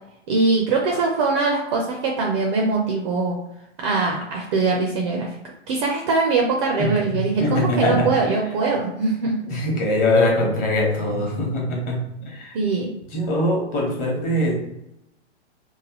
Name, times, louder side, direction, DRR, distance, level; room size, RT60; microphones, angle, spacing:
voice 1, 0.3-3.4 3.8-5.3 5.7-9.3 12.5-12.9, right 3 dB, 25° right, 0 dB, 0.4 m, -22 dB
voice 2, 6.8-8.1 9.5-12.6 13.1-14.6, left 1 dB, 25° left, -2 dB, 1.0 m, -22 dB
3.1 x 2.2 x 2.9 m, 0.84 s
hypercardioid pair, 115°, 34 cm